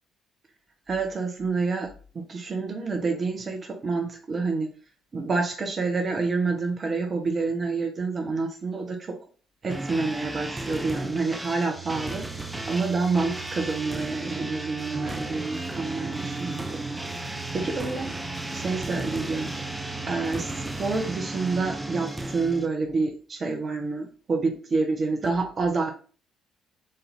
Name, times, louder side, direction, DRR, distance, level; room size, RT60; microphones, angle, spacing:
voice 1, 0.9-4.8 5.1-9.2 9.6-12.2 12.7-16.8 17.1-18.2 18.5-25.9, right 4 dB, 40° right, 2 dB, 0.7 m, -28 dB
sound 1, 9.7-22.7, right 1 dB, 10° right, 0.5 m, -34 dB
sound 2, 11.7-21.2, right 12 dB, 70° right, 0.5 m, -43 dB
4.2 x 2.6 x 4.0 m, 0.40 s
figure-of-eight pair, 45°, 0 cm